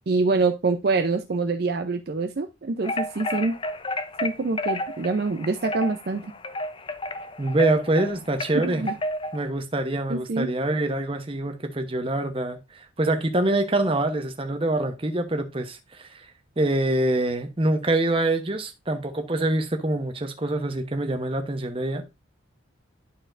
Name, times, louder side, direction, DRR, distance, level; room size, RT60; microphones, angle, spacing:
voice 1, 0.1-3.6 4.2-6.3 8.6-8.9 10.1-10.5, right 3 dB, 50° right, 0.5 m, -25 dB
sound 1, 2.8-9.5, left 1 dB, 25° left, 0.5 m, -31 dB
voice 2, 7.4-8.9 9.3-16.2 16.6-22.0, right 2 dB, 25° right, 0.9 m, -25 dB
11.5 x 4.3 x 2.5 m
head